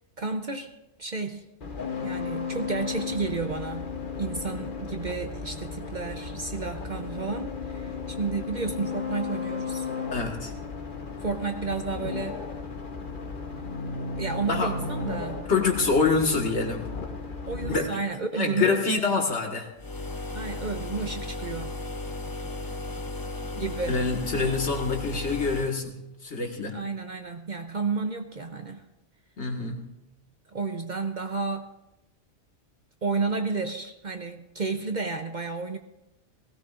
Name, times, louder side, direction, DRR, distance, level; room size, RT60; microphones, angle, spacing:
voice 1, 0.2-0.7 1.0-1.5 2.0-9.9 11.2-12.4 14.2-15.5 17.5-18.8 20.3-21.8 23.6-24.0 26.7-28.8 30.5-31.7 33.0-35.8, right 4 dB, 45° right, 6 dB, 0.7 m, -31 dB
sound 1, 1.6-17.8, left 5 dB, 45° left, 1.1 m, -35 dB
voice 2, 10.1-10.5 14.5-14.7 15.5-16.9 17.6-17.9 18.3-19.7 23.5-26.8 29.4-29.9, left 4 dB, 65° left, 1 dB, 2.0 m, -26 dB
sound 2, 19.8-25.8, left 2 dB, 25° left, 0.5 m, -35 dB
18.5 x 16.5 x 2.5 m, 0.93 s
omnidirectional pair, 1.2 m